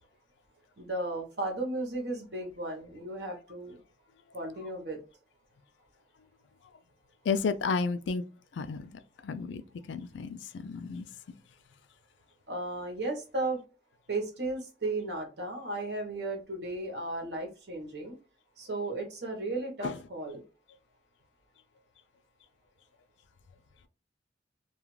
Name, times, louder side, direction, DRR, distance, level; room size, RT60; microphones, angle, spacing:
voice 1, 0.8-3.8 4.3-5.0 12.5-13.6 14.1-18.1 18.6-20.4, right 2 dB, 70° right, 1.0 m, -35 dB
voice 2, 7.2-8.2 8.5-9.6 9.9-11.4 19.8-20.0, left 5 dB, 90° left, 0.3 m, -32 dB
2.4 x 2.3 x 3.1 m
head